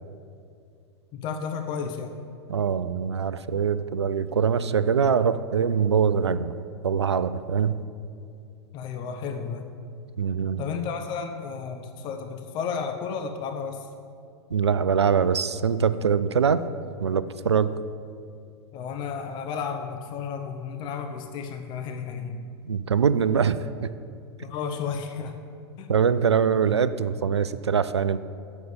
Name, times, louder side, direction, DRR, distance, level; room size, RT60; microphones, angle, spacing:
voice 1, 1.1-2.1 8.7-9.7 10.6-13.9 18.7-22.4 24.4-25.4 25.8-25.9, left 6 dB, 35° left, 6 dB, 0.7 m, -32 dB
voice 2, 2.5-6.6 6.8-7.8 10.2-10.6 14.5-16.7 17.0-17.8 22.7-23.9 25.9-28.2, right 7 dB, 80° right, 14 dB, 0.4 m, -23 dB
7.6 x 6.9 x 8.1 m, 2.4 s
figure-of-eight pair, 95°, 14 cm